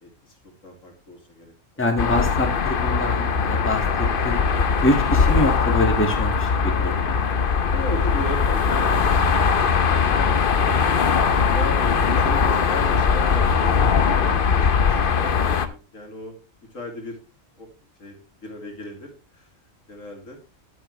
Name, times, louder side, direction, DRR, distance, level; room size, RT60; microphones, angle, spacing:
voice 1, 0.0-1.9 7.7-10.6 11.4-16.3 16.7-17.2 17.6-17.7 18.0-19.5 19.9-20.4, left 1 dB, 70° left, 2 dB, 3.0 m, -37 dB
voice 2, 1.8-4.4 4.8-7.2 10.1-10.2, left 1 dB, 10° left, 3 dB, 1.7 m, -25 dB
sound 1, 2.0-15.7, left 6 dB, 45° left, 0.9 m, -20 dB
10.5 x 9.2 x 3.1 m, 0.32 s
omnidirectional pair, 1.4 m